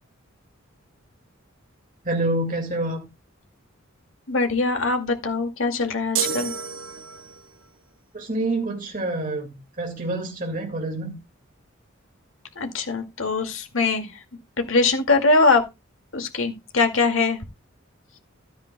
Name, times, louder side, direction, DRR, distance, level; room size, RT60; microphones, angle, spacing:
voice 1, 2.0-3.1 8.1-11.1, right 2 dB, 40° right, 2.1 m, -27 dB
voice 2, 4.3-6.5 12.6-14.1 14.7-15.6 16.1-17.4, left 3 dB, 75° left, 2.3 m, -22 dB
sound 1, 6.1-7.5, right 7 dB, 70° right, 1.2 m, -29 dB
13.5 x 10.0 x 2.3 m
head